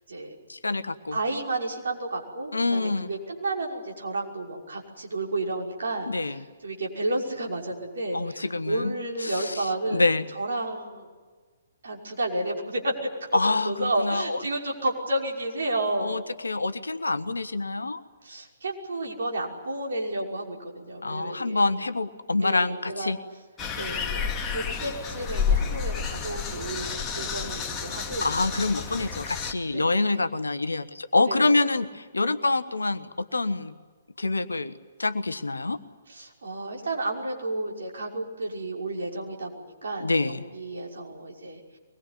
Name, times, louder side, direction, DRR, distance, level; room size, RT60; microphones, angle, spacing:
voice 1, 0.5-1.2 2.5-3.1 6.1-6.4 8.1-8.9 9.2-10.2 13.3-14.4 16.0-18.0 21.0-23.2 28.2-33.7 34.2-34.7 35.0-35.8 40.0-40.4, left 3 dB, 75° left, 11 dB, 1.3 m, -26 dB
voice 2, 1.1-10.0 10.3-11.1 11.8-12.9 13.7-16.2 18.2-21.6 22.4-23.1 23.8-26.9 27.1-28.3 29.7-30.3 31.3-31.5 36.1-41.6, right 2 dB, 60° right, 0 dB, 5.9 m, -31 dB
sound 1, 23.6-29.5, left 6 dB, 15° left, 2.6 m, -30 dB
24.0 x 21.5 x 9.8 m, 1.4 s
figure-of-eight pair, 125°, 0 cm